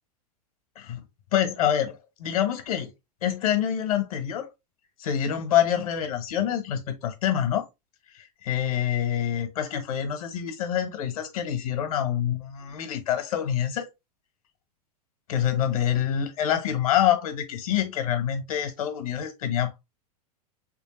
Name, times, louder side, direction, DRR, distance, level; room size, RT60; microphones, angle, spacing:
voice 1, 1.3-2.9 3.2-4.5 5.0-7.6 8.1-13.9 15.3-19.8, left 10 dB, 65° left, 1.2 m, -26 dB
3.4 x 3.4 x 3.1 m
figure-of-eight pair, 95°, 20 cm